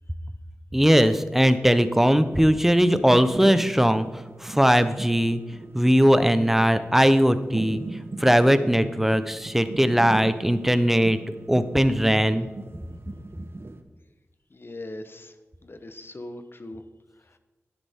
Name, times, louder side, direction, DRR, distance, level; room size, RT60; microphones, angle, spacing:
voice 1, 0.7-4.1 4.4-5.4 5.7-7.8 8.2-11.2 11.5-12.5, equal, 5° right, 11 dB, 0.8 m, -19 dB
sound 1, 1.7-13.8, right 2 dB, 55° right, 0.9 m, -39 dB
voice 2, 14.5-15.3 15.6-16.8 17.2-17.4, left 1 dB, 50° left, 9 dB, 1.0 m, -40 dB
10.5 x 9.9 x 3.6 m, 1.2 s
cardioid pair, 45°, 5 cm